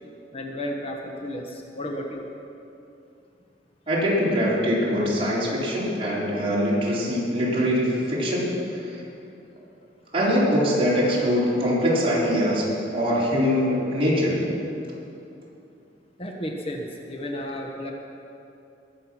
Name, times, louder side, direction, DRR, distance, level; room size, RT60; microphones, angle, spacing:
voice 1, 0.3-2.2 16.2-17.9, equal, 35° left, 1 dB, 1.1 m, -33 dB
voice 2, 3.9-9.0 10.1-12.6 12.9-14.4, equal, 35° right, -7 dB, 4.1 m, -23 dB
20.5 x 7.7 x 6.1 m, 2.7 s
head